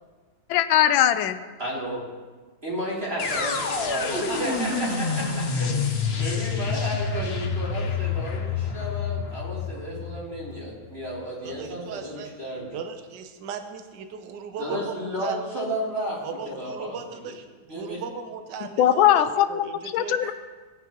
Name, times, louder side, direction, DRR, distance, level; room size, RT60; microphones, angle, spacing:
voice 1, 0.5-1.4 18.8-19.6 19.9-20.3, left 11 dB, 80° left, 10 dB, 1.4 m, -20 dB
voice 2, 1.6-2.0 2.6-12.7 14.6-17.0 17.2-17.3 17.7-18.0, equal, 30° right, -7 dB, 3.5 m, -32 dB
sound 1, 3.2-11.1, left 5 dB, 50° left, 0.8 m, -28 dB
voice 3, 11.4-12.3 12.7-15.4 16.2-20.3, right 6 dB, 65° right, 7 dB, 1.4 m, -37 dB
17.5 x 9.7 x 3.0 m, 1.3 s
omnidirectional pair, 2.2 m